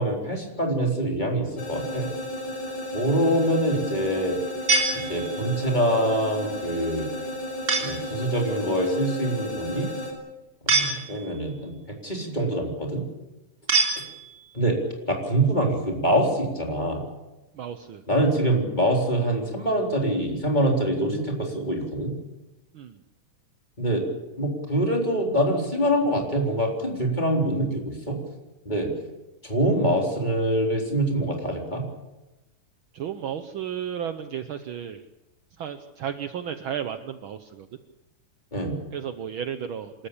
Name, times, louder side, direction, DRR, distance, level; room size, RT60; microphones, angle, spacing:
voice 1, 0.0-2.1 2.9-4.4 4.9-7.1 7.8-9.9 10.6-13.0 14.5-14.8 15.0-17.0 18.1-22.1 23.8-24.0 24.4-28.2 28.7-28.9 29.4-31.8 38.5-38.8, right 1 dB, 15° left, 0 dB, 4.0 m, -25 dB
sound 1, 1.6-10.1, left 1 dB, 75° left, 5.5 m, -33 dB
sound 2, 4.7-5.6 7.7-8.2 10.7-11.5 13.7-14.6, right 3 dB, 25° right, 3.8 m, -25 dB
voice 2, 17.5-18.0 22.7-23.0 32.9-35.0 35.6-37.7 38.9-40.1, right 8 dB, 75° right, 9 dB, 1.1 m, -33 dB
27.5 x 14.0 x 8.5 m, 1.0 s
omnidirectional pair, 3.5 m